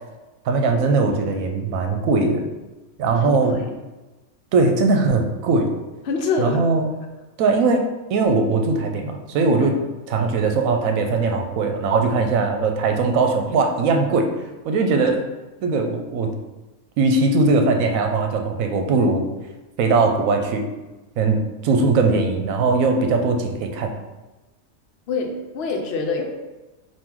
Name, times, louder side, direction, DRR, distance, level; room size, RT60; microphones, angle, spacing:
voice 1, 0.5-2.4 3.0-3.6 4.5-5.7 6.4-6.9 7.4-7.8 8.1-9.8 10.1-14.3 14.6-15.2 15.6-16.3 17.0-19.2 19.8-20.7 21.2-23.9, right 3 dB, 75° right, 4 dB, 1.0 m, -20 dB
voice 2, 3.1-3.7 6.0-6.6 9.6-9.7 25.1-26.2, left 4 dB, 60° left, 3 dB, 0.8 m, -25 dB
3.7 x 2.6 x 4.5 m, 1.1 s
omnidirectional pair, 1.4 m